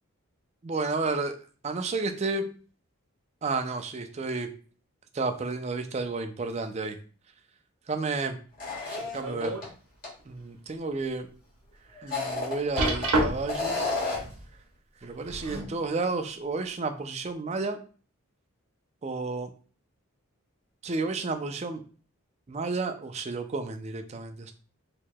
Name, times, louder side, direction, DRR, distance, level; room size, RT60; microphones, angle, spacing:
voice 1, 0.6-1.4 1.6-2.5 3.4-4.5 5.1-7.0 7.9-8.4 9.1-9.6 10.3-11.3 12.0-13.8 15.0-17.8 19.0-19.5 20.8-21.8 22.5-24.5, right 3 dB, 30° right, 7 dB, 0.4 m, -31 dB
sound 1, 8.6-9.6 10.0-10.1 11.9-13.1 13.5-14.4, left 3 dB, 40° left, 1.4 m, -31 dB
sound 2, 8.9-9.7 10.2-10.3 10.9-11.0 12.8-13.7 15.0-15.8 16.7-16.8, right 2 dB, 75° right, 1.1 m, -28 dB
4.6 x 2.9 x 2.2 m, 0.39 s
head